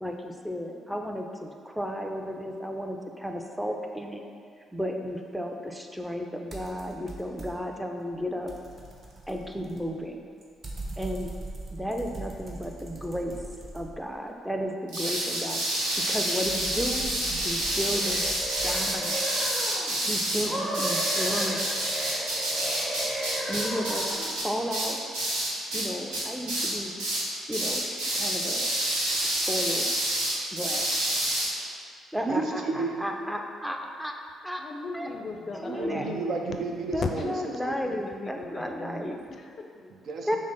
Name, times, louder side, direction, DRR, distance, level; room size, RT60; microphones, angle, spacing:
voice 1, 0.0-4.2 4.7-8.5 9.3-10.2 11.0-11.3 11.7-13.4 13.7-15.6 16.0-17.2 17.4-18.2 18.6-19.4 19.9-21.7 23.3-25.0 25.7-26.9 27.5-28.7 29.5-29.9 30.5-30.9 32.1-34.2 34.4-34.6 34.9-35.1 35.5-36.1 36.9-39.2 40.3-40.4, equal, 5° right, 3 dB, 0.5 m, -33 dB
sound 1, 6.5-7.8 8.1-14.3 15.8-19.1, right 2 dB, 45° right, 0.9 m, -42 dB
sound 2, 14.9-25.9 26.1-26.7 27.0-27.3 27.5-31.5, right 1 dB, 85° right, 1.0 m, -28 dB
sound 3, 17.7-20.0 20.5-24.3, right 1 dB, 25° right, 1.2 m, -35 dB
voice 2, 32.2-33.0 35.6-37.8 39.9-40.4, right 3 dB, 60° right, 2 dB, 0.5 m, -32 dB
voice 3, 34.6-36.2 37.1-37.3 37.9-39.9, left 3 dB, 50° left, 3 dB, 0.4 m, -39 dB
6.1 x 2.1 x 3.9 m, 2.2 s
hypercardioid pair, 55°, 0 cm